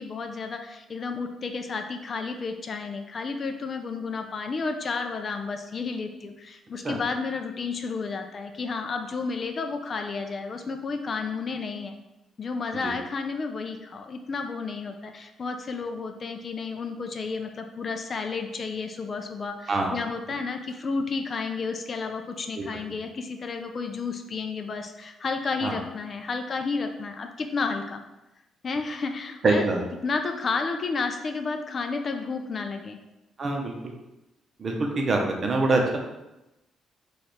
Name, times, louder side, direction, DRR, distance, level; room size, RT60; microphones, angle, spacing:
voice 1, 0.0-12.0 12.4-28.0 28.6-29.7 30.0-33.0, left 4 dB, 45° left, 5 dB, 0.4 m, -31 dB
voice 2, 29.4-29.8 33.4-33.7 34.6-36.0, right 2 dB, 45° right, 1 dB, 0.7 m, -24 dB
3.2 x 2.4 x 4.2 m, 0.96 s
cardioid pair, 90°, 0 cm